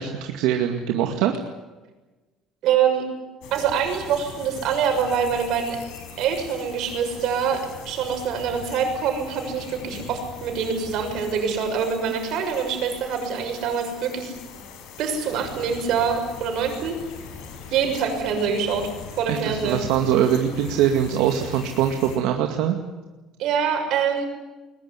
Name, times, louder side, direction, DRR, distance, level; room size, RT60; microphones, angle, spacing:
voice 1, 0.0-1.3 19.3-22.8, right 10 dB, 80° right, 4 dB, 2.2 m, -22 dB
voice 2, 2.6-3.0 3.5-5.8 6.2-14.3 15.0-17.0 17.7-19.8 23.4-24.2, right 7 dB, 55° right, 5 dB, 6.5 m, -25 dB
sound 1, 3.4-22.2, left 6 dB, 75° left, 5.6 m, -41 dB
21.5 x 21.0 x 9.8 m, 1.2 s
cardioid pair, 165°, 0 cm